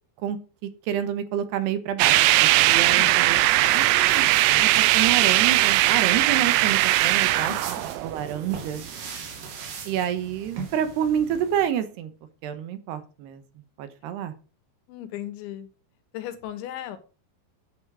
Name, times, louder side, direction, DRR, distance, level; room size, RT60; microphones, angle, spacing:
voice 1, 0.6-3.4 3.7-4.2 4.6-7.8 8.0-8.8 9.9-12.1 12.4-13.4 13.8-14.3, right 9 dB, 75° right, 11 dB, 3.1 m, -28 dB
sound 1, 2.0-8.6, right 16 dB, 90° right, 3.1 m, -20 dB
sound 2, 3.5-11.7, right 5 dB, 55° right, 3.6 m, -39 dB
voice 2, 7.3-7.8 14.9-15.7 16.1-17.0, left 12 dB, 90° left, 11 dB, 3.8 m, -36 dB
10.0 x 8.2 x 6.3 m, 0.35 s
omnidirectional pair, 5.2 m